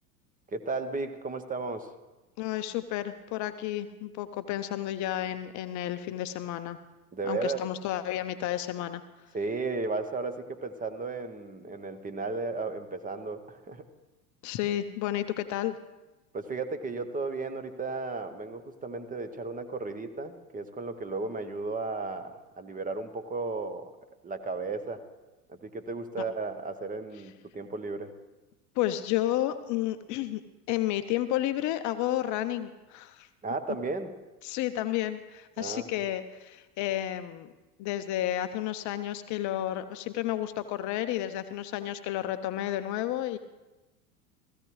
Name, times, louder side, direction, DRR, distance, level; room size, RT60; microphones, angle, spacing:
voice 1, 0.5-1.9 7.1-7.6 9.3-13.8 16.3-23.9 24.2-25.0 25.5-28.1 33.4-34.2 35.6-36.0, right 3 dB, 15° right, 10 dB, 0.9 m, -34 dB
voice 2, 2.4-6.8 7.2-9.0 14.4-15.8 26.2-26.3 28.8-30.4 30.7-33.3 34.4-37.5 37.8-43.4, left 13 dB, 40° left, 10 dB, 0.6 m, -31 dB
16.0 x 15.0 x 3.1 m, 1.1 s
hypercardioid pair, 90°, 47 cm